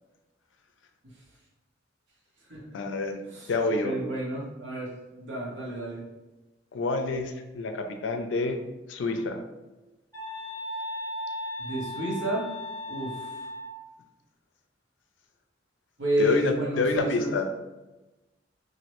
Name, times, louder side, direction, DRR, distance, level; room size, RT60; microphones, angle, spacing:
voice 1, 2.7-3.2 3.5-4.0 6.7-8.6 8.9-9.4 16.2-17.5, left 3 dB, 85° left, 6 dB, 0.4 m, -28 dB
voice 2, 3.8-4.9 5.2-6.0 11.6-12.5 12.9-13.3 16.0-17.4, equal, 75° right, -3 dB, 0.9 m, -30 dB
sound 1, 10.1-13.8, left 1 dB, 20° left, 1.1 m, -36 dB
3.1 x 2.5 x 2.9 m, 1.1 s
head